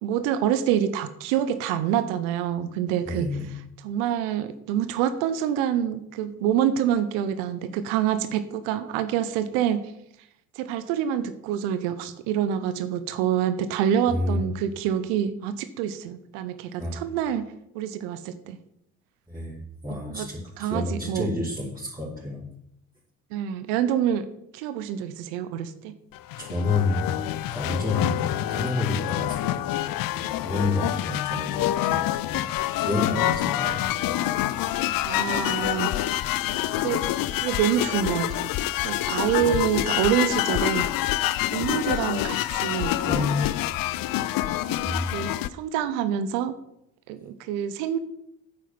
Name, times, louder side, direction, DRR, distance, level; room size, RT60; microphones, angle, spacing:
voice 1, 0.0-3.3 3.8-9.9 10.6-18.6 20.1-20.3 20.6-21.3 23.3-24.2 24.5-25.9 30.8-30.9 33.1-33.4 35.0-35.9 36.8-37.0 37.3-38.5 38.8-40.8 41.5-43.2 44.7-44.8 45.1-46.5 47.1-48.0, right 9 dB, 75° right, 12 dB, 1.0 m, -26 dB
voice 2, 3.0-3.5 14.1-14.4 16.8-17.0 19.3-22.4 26.4-27.1 27.5-29.6 30.1-32.5 32.8-33.8 39.4-39.7 42.1-42.2 43.0-43.5 44.8-45.1, left 2 dB, 10° right, -8 dB, 4.9 m, -29 dB
sound 1, 26.1-45.5, left 14 dB, 60° left, 0.7 m, -27 dB
8.8 x 8.4 x 7.7 m, 0.77 s
hypercardioid pair, 45°, 38 cm